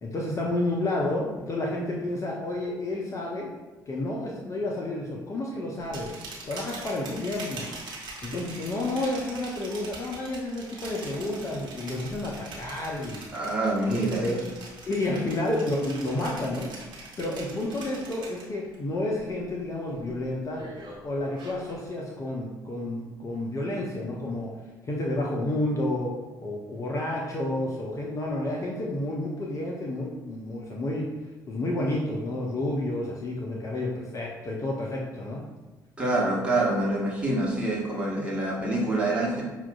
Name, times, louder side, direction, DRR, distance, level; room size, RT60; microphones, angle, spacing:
voice 1, 0.0-3.5 3.9-6.1 6.5-7.7 8.2-13.2 13.9-14.4 14.9-16.7 17.2-20.6 21.0-24.5 24.8-26.1 26.4-31.1 31.5-35.4, left 1 dB, 30° left, -2 dB, 0.6 m, -30 dB
sound 1, 5.8-18.8 19.1-19.5 19.9-21.8, right 3 dB, 45° right, 1.2 m, -43 dB
voice 2, 13.3-14.3 36.0-39.4, right 2 dB, 10° right, -5 dB, 1.2 m, -26 dB
5.7 x 2.4 x 2.3 m, 1.1 s
figure-of-eight pair, 50°, 10 cm